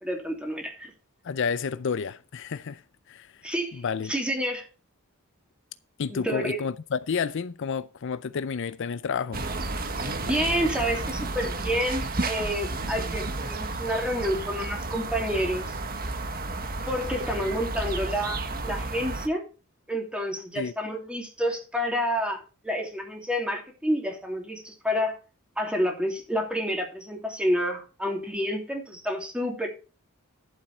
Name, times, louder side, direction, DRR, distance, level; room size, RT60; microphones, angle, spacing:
voice 1, 0.0-0.9 3.4-4.7 6.1-6.6 10.2-15.7 16.9-19.4 19.9-25.2 25.6-29.7, equal, 5° right, 3.0 m, -29 dB
voice 2, 1.2-2.8 3.1-3.4 3.7-4.1 6.0-9.4 20.6-20.7, left 6 dB, 60° left, 0.5 m, -30 dB
sound 1, 9.3-19.3, right 2 dB, 45° right, 1.5 m, -32 dB
11.5 x 7.6 x 4.4 m
head